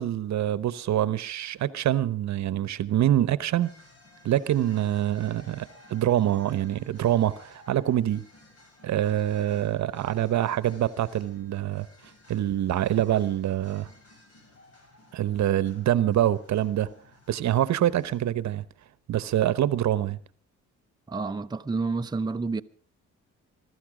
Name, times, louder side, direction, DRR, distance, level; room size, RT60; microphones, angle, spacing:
voice 1, 0.0-3.7 4.2-8.3 8.8-11.9 12.3-13.9 15.1-16.9 17.3-18.6 19.1-20.2, right 12 dB, 65° right, 0.9 m, -25 dB
sound 1, 3.6-18.2, left 2 dB, 55° left, 7.1 m, -55 dB
voice 2, 21.1-22.6, right 3 dB, 15° right, 0.7 m, -29 dB
21.5 x 13.0 x 5.0 m
cardioid pair, 90°, 30 cm